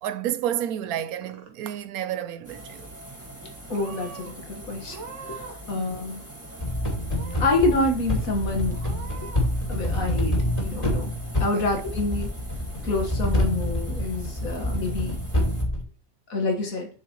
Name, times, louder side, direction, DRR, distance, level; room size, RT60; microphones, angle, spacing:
voice 1, 0.0-2.9 5.7-5.8 11.5-11.7, right 11 dB, 85° right, 1.1 m, -30 dB
Purr / Meow, 0.9-1.8 2.0-2.6 3.3-3.4 3.7-4.3 4.8-5.7 6.0-6.7 7.1-7.7 8.1-8.2 8.7-9.5, right 5 dB, 60° right, 1.4 m, -43 dB
sound 1, 2.4-15.6, right 1 dB, 10° right, 1.8 m, -43 dB
voice 2, 3.7-5.0 5.3-5.4 5.7-6.2 7.4-8.8 9.7-10.3 10.6-11.1 11.4-12.3 12.8-15.2 16.3-16.9, left 2 dB, 75° left, 1.9 m, -27 dB
sound 2, 6.6-15.8, left 1 dB, 25° left, 2.9 m, -27 dB
8.0 x 6.4 x 3.0 m
omnidirectional pair, 1.5 m